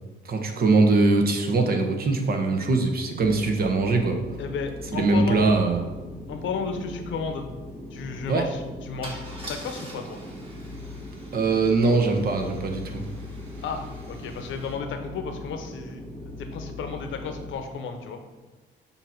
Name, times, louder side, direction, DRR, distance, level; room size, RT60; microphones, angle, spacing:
voice 1, 0.2-4.2 4.9-5.8 8.3-8.4 11.3-13.0, right 3 dB, 50° right, 4 dB, 1.0 m, -22 dB
sound 1, 3.2-17.5, left 2 dB, 10° right, 1.6 m, -40 dB
voice 2, 4.4-5.4 6.3-7.5 7.9-9.2 9.5-10.2 13.6-18.2, left 5 dB, 75° left, 6 dB, 0.9 m, -33 dB
Car / Engine starting / Idling, 6.4-6.5 6.8-7.0 9.0-14.7, right 1 dB, 30° right, 2.1 m, -45 dB
7.0 x 2.9 x 5.9 m, 1.2 s
cardioid pair, 90°, 20 cm